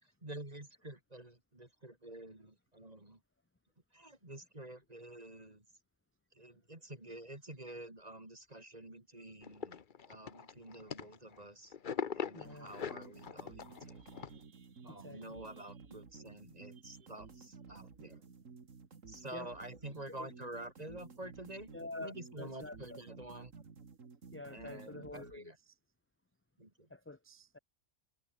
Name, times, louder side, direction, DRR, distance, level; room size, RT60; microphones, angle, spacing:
voice 1, 0.0-3.2 3.9-5.7 6.3-9.8 10.1-11.8 12.1-14.0 14.8-18.2 19.1-21.7 22.0-23.5 24.5-25.6 26.6-26.9, right 1 dB, 30° right, 4.3 m, -49 dB
sound 1, 9.4-11.4 11.7-14.3, left 7 dB, 45° left, 1.0 m, -41 dB
voice 2, 12.3-12.7 14.0-15.7 16.8-16.9 19.3-19.5 20.2-20.3 21.7-23.0 24.3-25.7 26.9-27.6, left 2 dB, 15° left, 0.5 m, -49 dB
sound 2, 12.5-25.4, right 4 dB, 90° right, 2.5 m, -54 dB
omnidirectional pair, 1.3 m